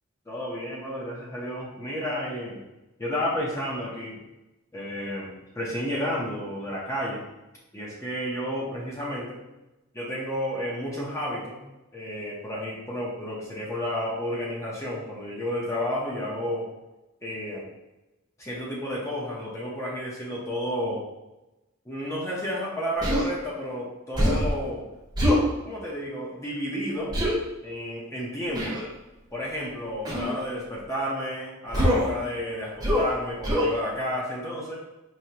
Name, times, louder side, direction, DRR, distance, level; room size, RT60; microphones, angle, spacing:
voice 1, 0.3-2.6 3.0-4.2 4.7-7.3 7.7-9.4 9.9-11.6 11.9-16.7 17.2-17.7 18.4-21.0 21.9-24.9 25.6-27.1 27.6-28.8 29.3-34.8, equal, 15° left, -6 dB, 0.7 m, -31 dB
Human voice, 23.0-23.3 24.1-24.5 25.1-25.5 27.1-27.3 28.5-28.8 30.0-30.3 31.7-32.1 32.8-33.1 33.4-33.7, equal, 20° right, 1.0 m, -23 dB
4.8 x 2.7 x 2.8 m, 1.0 s
head